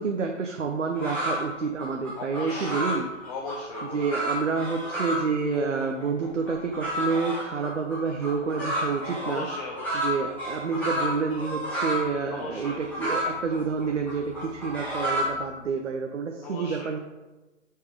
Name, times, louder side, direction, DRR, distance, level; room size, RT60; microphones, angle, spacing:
voice 1, 0.0-3.1 3.9-9.5 9.9-17.0, right 5 dB, 70° right, 3 dB, 0.9 m, -28 dB
sound 1, 0.9-1.4 1.8-5.3 5.5-12.1 12.4-15.5, equal, 5° left, 2.2 m, -31 dB
voice 2, 2.1-2.9 3.3-4.0 9.2-10.2 12.3-12.8 16.4-16.9, left 2 dB, 30° left, -1 dB, 0.9 m, -37 dB
7.1 x 4.7 x 4.9 m, 1.1 s
figure-of-eight pair, 135°, 38 cm